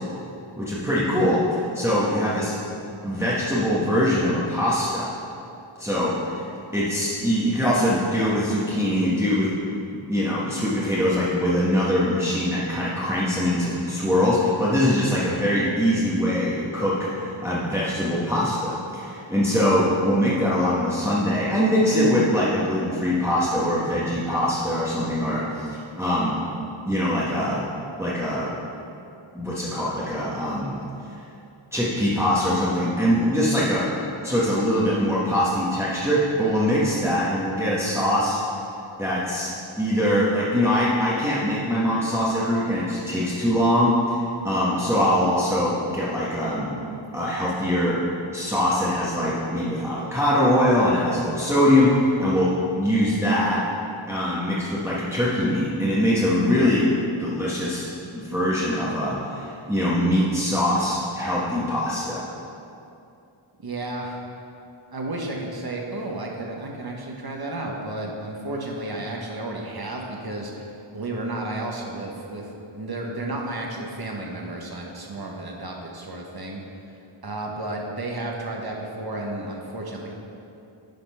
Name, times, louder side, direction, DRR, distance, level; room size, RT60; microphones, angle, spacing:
voice 1, 0.6-2.6 3.0-5.1 5.8-6.5 6.7-9.5 9.9-26.3 26.8-27.6 28.0-28.5 29.3-30.7 31.7-33.9 34.2-38.4 39.0-39.5 39.8-46.7 47.1-48.0 48.3-52.5 52.8-53.6 54.1-57.9 58.1-62.2, equal, 5° right, -8 dB, 1.4 m, -22 dB
voice 2, 63.6-64.2 64.9-70.7 70.9-76.6 77.2-80.1, right 2 dB, 50° right, -1 dB, 1.3 m, -32 dB
10.5 x 4.2 x 5.5 m, 2.7 s
wide cardioid pair, 85°, 50 cm